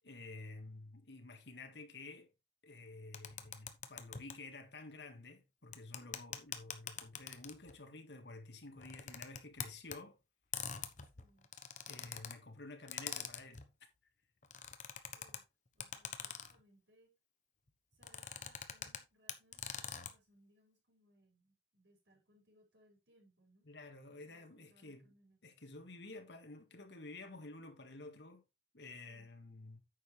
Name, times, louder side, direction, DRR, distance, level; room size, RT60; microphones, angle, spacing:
voice 1, 0.0-2.3 2.6-10.2 11.9-13.6 23.7-25.1 25.4-28.4 28.7-29.8, left 2 dB, 80° left, 1.8 m, -51 dB
sound 1, 3.1-4.3 5.7-7.7 8.8-10.0 10.5-12.3 12.9-13.7 14.4-15.4 15.8-16.6 18.0-19.0 19.3-20.1, left 8 dB, 45° left, 1.0 m, -44 dB
voice 2, 11.1-11.5 15.1-15.5 15.7-17.1 17.9-23.7 24.2-25.4 29.0-29.3, right 1 dB, 80° right, 5.6 m, -70 dB
9.5 x 7.1 x 3.3 m
head